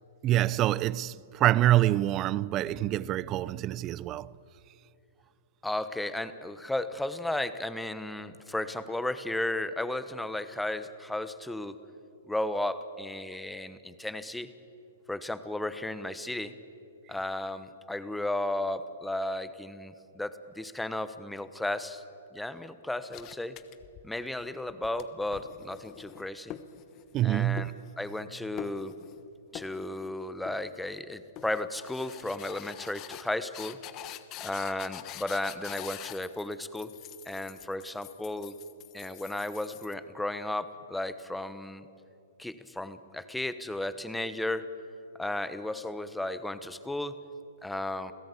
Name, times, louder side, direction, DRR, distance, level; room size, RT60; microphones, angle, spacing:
voice 1, 0.2-4.4 27.1-27.8, right 14 dB, 30° right, 0.5 m, -26 dB
voice 2, 5.6-11.8 12.3-14.5 15.1-16.5 17.1-22.0 22.3-23.6 24.0-26.6 27.2-27.7 28.0-28.9 29.5-33.8 34.4-36.9 37.2-38.6 38.9-41.9 42.4-44.7 45.2-47.2 47.6-48.1, left 1 dB, 5° left, 1.1 m, -34 dB
sound 1, 23.1-24.3 24.7-27.3 27.6-28.3 28.6-29.2 29.5-30.1 30.5-31.0 31.4-39.9, left 12 dB, 30° left, 1.1 m, -45 dB
28.0 x 16.5 x 8.4 m
hypercardioid pair, 140°, 0 cm